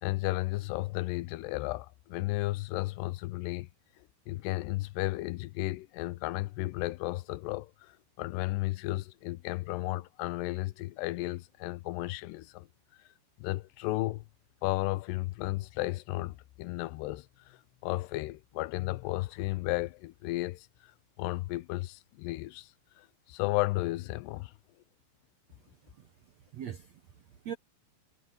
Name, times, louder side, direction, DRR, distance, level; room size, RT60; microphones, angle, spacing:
voice 1, 0.0-3.7 4.3-12.7 13.4-14.2 14.6-20.9 21.2-22.7 23.0-24.5, left 19 dB, 85° left, 2.7 m, -34 dB
voice 2, 25.5-27.5, right 9 dB, 80° right, 1.5 m, -44 dB
omnidirectional pair, 4.9 m